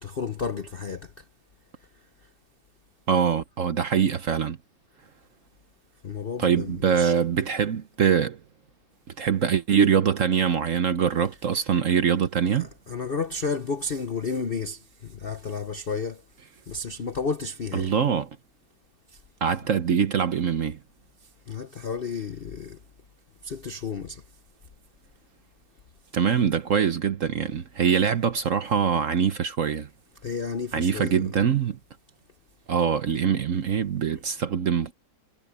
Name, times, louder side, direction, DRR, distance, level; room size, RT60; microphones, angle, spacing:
voice 1, 0.0-1.2 6.0-7.2 11.5-11.8 12.5-16.2 16.7-17.9 21.5-22.8 23.4-24.2 30.2-31.4, left 4 dB, 50° left, 0.6 m, -32 dB
voice 2, 3.1-4.6 6.4-8.4 9.2-12.7 17.7-18.3 19.4-20.8 26.1-29.9 30.7-31.8 32.7-34.9, right 7 dB, 50° right, 1.0 m, -23 dB
omnidirectional pair, 2.1 m